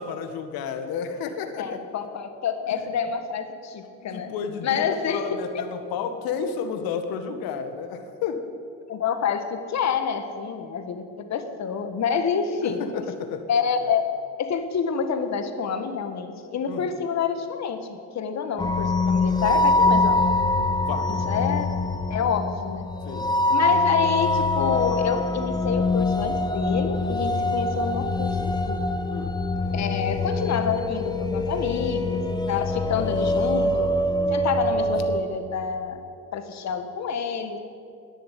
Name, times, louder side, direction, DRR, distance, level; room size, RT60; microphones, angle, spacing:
voice 1, 0.0-1.8 2.7-2.8 4.0-8.4 12.6-13.4 16.7-17.0 20.8-21.5 23.1-23.3 29.1-29.3, left 6 dB, 65° left, 7 dB, 1.8 m, -32 dB
voice 2, 1.6-4.3 4.6-5.3 8.9-11.0 11.3-12.9 13.5-14.1 14.4-20.3 21.1-21.7 22.1-22.9 23.5-28.8 29.7-33.9 34.3-36.0 36.3-37.6, left 6 dB, 45° left, 8 dB, 1.7 m, -28 dB
sound 1, 18.6-35.2, left 2 dB, 10° left, 1.4 m, -24 dB
11.5 x 10.5 x 9.5 m, 2.4 s
supercardioid pair, 90°, 38 cm